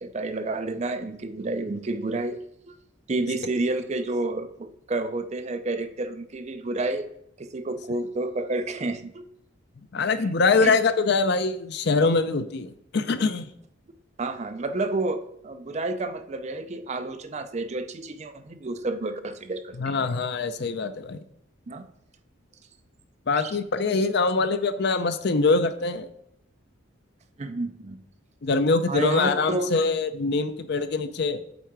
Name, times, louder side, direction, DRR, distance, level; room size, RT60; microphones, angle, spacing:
voice 1, 0.0-2.4 2.7-2.8 3.1-7.1 7.4-9.2 10.6-10.8 14.2-20.0 21.7-21.9 23.3-23.5 27.4-28.0 28.9-29.7, right 2 dB, 35° right, 9 dB, 0.5 m, -30 dB
voice 2, 9.9-13.5 19.8-21.2 23.3-26.1 28.4-31.4, left 4 dB, 55° left, 11 dB, 0.5 m, -23 dB
8.2 x 3.7 x 4.6 m, 0.74 s
head